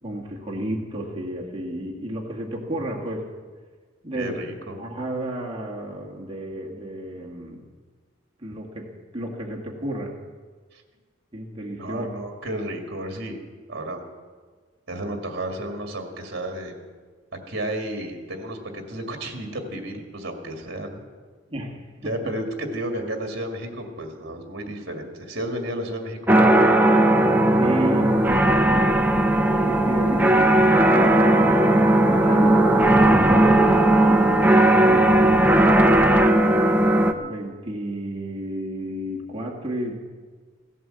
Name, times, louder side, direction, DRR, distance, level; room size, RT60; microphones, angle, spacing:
voice 1, 0.0-3.3 4.0-4.4 4.8-7.7 8.4-8.9 9.1-10.1 11.3-12.1 21.5-22.1 27.5-28.9 29.7-31.6 32.0-35.8 37.1-39.9, right 1 dB, 25° right, -1 dB, 1.8 m, -32 dB
voice 2, 4.2-4.8 10.7-10.8 11.8-13.4 13.7-14.0 14.9-16.7 17.3-21.0 22.0-26.7, right 1 dB, 55° right, 4 dB, 2.0 m, -32 dB
sound 1, 26.3-37.1, right 1 dB, 10° right, 0.7 m, -17 dB
16.0 x 11.0 x 7.7 m, 1.5 s
head